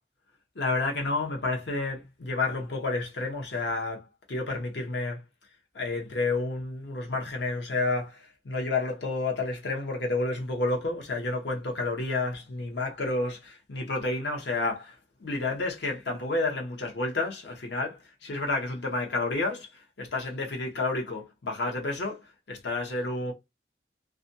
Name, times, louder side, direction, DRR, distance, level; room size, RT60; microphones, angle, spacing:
voice 1, 0.5-5.2 5.7-23.3, left 2 dB, 75° left, 0.8 m, -30 dB
2.4 x 2.2 x 2.6 m
head